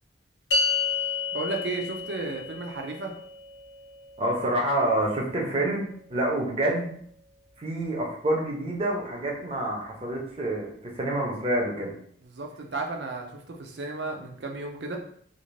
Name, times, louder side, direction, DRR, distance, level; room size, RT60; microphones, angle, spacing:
sound 1, 0.5-7.0, left 4 dB, 80° left, 0.5 m, -33 dB
voice 1, 1.3-3.1 12.2-15.0, right 3 dB, 70° right, 2 dB, 0.5 m, -33 dB
voice 2, 4.2-7.0 7.6-10.7 10.9-11.9, right 1 dB, 30° right, -1 dB, 0.6 m, -27 dB
2.5 x 2.5 x 3.2 m, 0.62 s
head